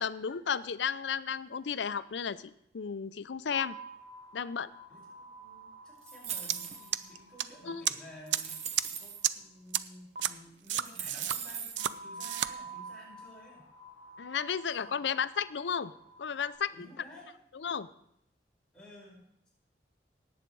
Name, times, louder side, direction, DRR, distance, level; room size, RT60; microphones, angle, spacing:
voice 1, 0.0-3.8 4.3-4.7 7.6-7.8 14.2-15.9 16.2-16.7 17.6-17.9, left 7 dB, 85° left, 15 dB, 0.5 m, -33 dB
sound 1, 3.5-8.8 11.8-16.5, right 2 dB, 70° right, 5.2 m, -49 dB
voice 2, 4.9-8.6 8.9-13.7 14.8-15.1 16.7-17.4 18.7-19.5, left 1 dB, 5° left, -5 dB, 4.9 m, -53 dB
sound 2, 6.1-7.0 7.7-7.8 8.3-9.2 10.2-10.3 10.7-11.9, right 7 dB, 40° right, 0.9 m, -39 dB
sound 3, 6.5-6.6 6.9-7.4 7.9-8.0 8.3-8.4 8.8-8.9 9.2-9.3 9.7-9.8 10.2-10.3 10.7-11.4 11.8-11.9 12.2-12.5, right 12 dB, 85° right, 0.5 m, -29 dB
18.0 x 8.0 x 4.7 m, 0.77 s
head